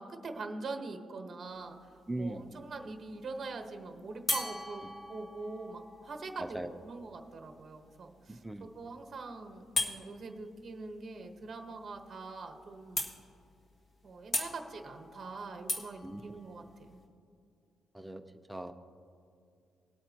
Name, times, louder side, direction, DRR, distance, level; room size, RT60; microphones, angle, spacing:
voice 1, 0.0-4.8 5.1-6.6 6.8-13.0 14.0-17.0, right 3 dB, 35° right, 4 dB, 1.1 m, -43 dB
sound 1, 1.5-2.0 4.3-7.9 9.7-10.0 11.9-12.0 12.4-12.5 12.9-13.5 14.3-17.0, left 2 dB, 35° left, 1.5 m, -38 dB
voice 2, 2.1-2.7 6.4-6.7 8.3-8.7 16.0-16.2 17.9-18.2 18.5-18.7, right 1 dB, 5° right, 7 dB, 0.5 m, -39 dB
20.0 x 8.7 x 2.9 m, 2.4 s
cardioid pair, 130°, 0 cm